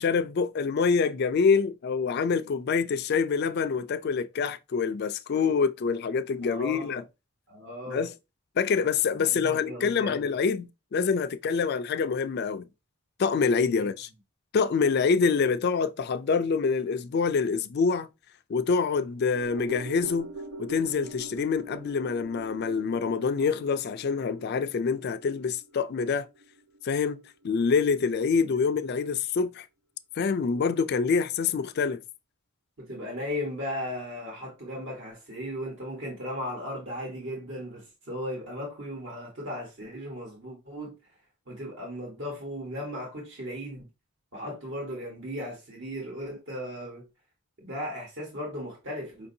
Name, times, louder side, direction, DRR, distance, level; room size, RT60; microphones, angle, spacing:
voice 1, 0.0-7.0 7.9-8.1 8.6-12.7 13.2-14.1 14.5-18.1 18.5-20.3 20.6-26.3 26.8-29.7 30.2-32.0, left 5 dB, 45° left, 0.3 m, -26 dB
voice 2, 6.4-7.0 7.5-8.1 9.1-10.3 13.6-13.9 28.4-28.6 32.8-40.9 41.5-43.9 44.3-47.0 47.6-49.3, equal, 55° right, 1.3 m, -36 dB
sound 1, 19.3-27.8 28.1-28.2, right 2 dB, 80° right, 0.8 m, -43 dB
5.1 x 2.6 x 2.6 m
head